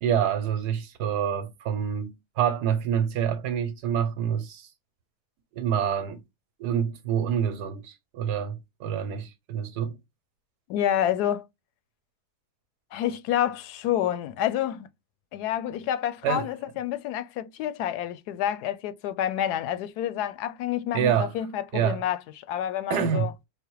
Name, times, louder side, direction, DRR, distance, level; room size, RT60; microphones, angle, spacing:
voice 1, 0.0-4.7 5.5-6.2 6.6-10.0 16.2-16.5 20.9-21.3 21.7-22.0 22.9-23.3, right 8 dB, 85° right, 1.3 m, -27 dB
voice 2, 10.7-11.4 12.9-14.9 15.3-23.3, left 11 dB, 80° left, 1.1 m, -28 dB
5.4 x 2.1 x 4.5 m
omnidirectional pair, 1.7 m